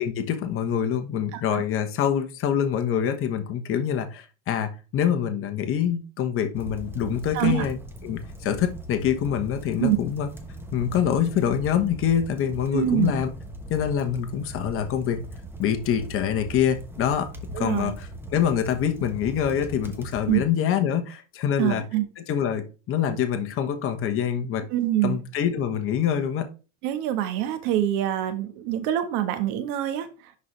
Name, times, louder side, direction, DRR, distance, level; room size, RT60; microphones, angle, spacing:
voice 1, 0.0-7.8 8.0-10.3 10.7-13.3 13.7-15.2 15.6-17.3 17.6-21.8 22.2-24.6 25.0-26.5, left 9 dB, 35° left, 1.2 m, -25 dB
voice 2, 1.3-1.6 7.3-7.7 9.8-10.0 12.7-13.1 17.5-17.9 20.3-20.4 21.6-22.0 24.7-25.2 26.8-30.1, right 12 dB, 65° right, 1.4 m, -25 dB
sound 1, 6.5-20.5, right 1 dB, 5° right, 1.2 m, -40 dB
11.0 x 4.1 x 3.3 m
supercardioid pair, 125°, 37 cm